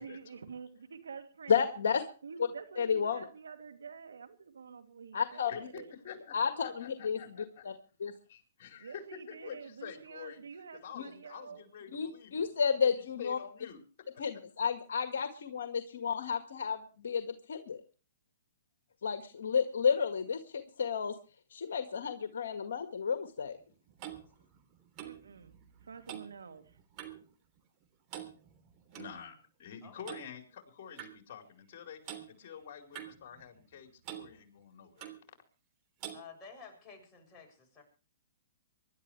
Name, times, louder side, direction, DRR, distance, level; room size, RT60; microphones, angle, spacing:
voice 1, 0.0-1.6 2.2-5.9 8.8-11.6 25.0-25.6 25.8-26.6, right 5 dB, 85° right, 7 dB, 2.8 m, -48 dB
voice 2, 1.5-2.0 2.8-3.2 5.1-5.5 6.3-7.2 11.0-11.1 11.9-13.4 14.2-17.8 19.0-21.1 21.5-23.6, left 6 dB, 75° left, 8 dB, 1.7 m, -31 dB
voice 3, 5.5-7.4 8.6-10.4 10.7-12.5 12.8-14.2 28.9-35.1, left 7 dB, 50° left, 4 dB, 4.5 m, -48 dB
Clock, 23.4-27.3 27.6-27.8 28.1-29.1 30.1-30.3 31.0-31.1 32.0-32.3 32.9-33.8 34.0-34.3 35.0-35.2 36.0-36.2, right 11 dB, 35° right, 3.3 m, -46 dB
voice 4, 36.1-37.8, left 5 dB, 20° left, 0 dB, 7.3 m, -52 dB
25.0 x 12.0 x 3.3 m, 0.36 s
hypercardioid pair, 130°, 0 cm